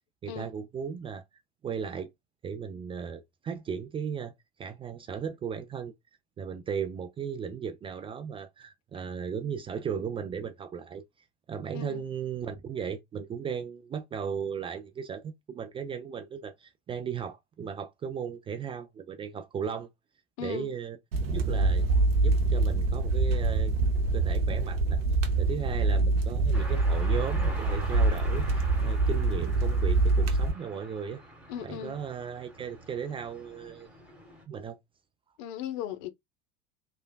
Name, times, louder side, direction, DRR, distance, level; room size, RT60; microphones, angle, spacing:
voice 1, 0.2-1.2 1.6-2.1 2.4-4.3 4.6-5.9 6.4-11.0 11.5-19.9 20.4-21.0 21.3-21.9 22.2-23.7 24.1-25.0 25.4-31.2 31.6-33.9 34.5-34.8, right 7 dB, 20° right, 0.3 m, -36 dB
voice 2, 20.4-20.7 31.5-32.0 35.4-36.1, left 10 dB, 55° left, 0.6 m, -37 dB
sound 1, 21.1-30.5, right 3 dB, 80° right, 0.6 m, -25 dB
sound 2, 26.5-34.4, right 1 dB, 5° right, 1.4 m, -45 dB
3.1 x 2.2 x 2.2 m
hypercardioid pair, 80°, 29 cm